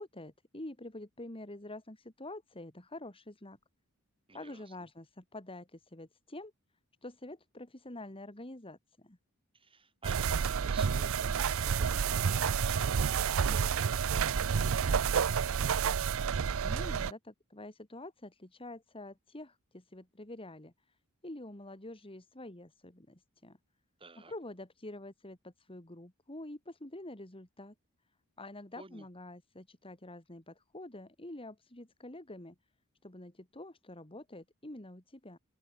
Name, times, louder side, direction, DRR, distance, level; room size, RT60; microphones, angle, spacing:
voice 1, 0.0-3.6 4.3-6.5 7.0-9.2 16.4-20.9 21.2-23.6 24.3-27.7 28.4-32.5 33.0-35.4, left 1 dB, 25° left, 2.9 m, -47 dB
voice 2, 4.3-4.8 9.5-14.3 24.0-24.3 28.8-29.1, right 3 dB, 25° right, 5.5 m, -53 dB
sound 1, 10.0-17.1, right 6 dB, 65° right, 0.5 m, -29 dB
open air
head